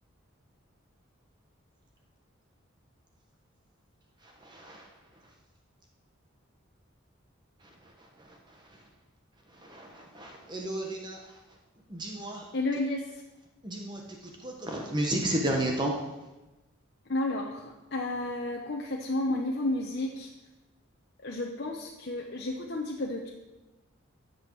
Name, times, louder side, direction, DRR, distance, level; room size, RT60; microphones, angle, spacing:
voice 1, 4.4-4.9 9.6-11.2 11.9-12.4 13.6-14.0 14.4-16.0, right 1 dB, 20° right, 1 dB, 1.2 m, -32 dB
voice 2, 12.5-13.2 17.1-20.3 21.2-23.3, left 2 dB, 50° left, 0 dB, 0.9 m, -32 dB
13.0 x 7.9 x 4.7 m, 1.1 s
head